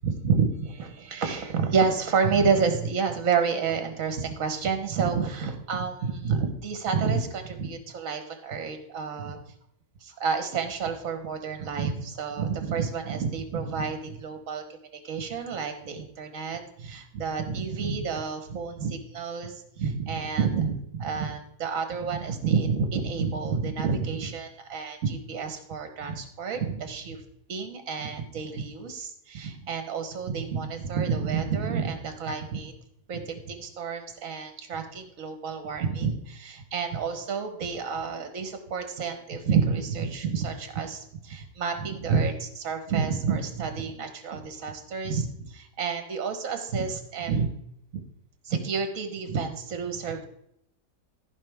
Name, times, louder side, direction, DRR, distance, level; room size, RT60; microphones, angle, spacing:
voice 1, 0.0-9.4 10.0-14.6 15.0-27.2 27.5-32.7 33.1-47.5 47.9-48.0 48.4-50.3, right 5 dB, 55° right, 7 dB, 1.6 m, -29 dB
14.5 x 5.3 x 3.5 m, 0.73 s
omnidirectional pair, 1.7 m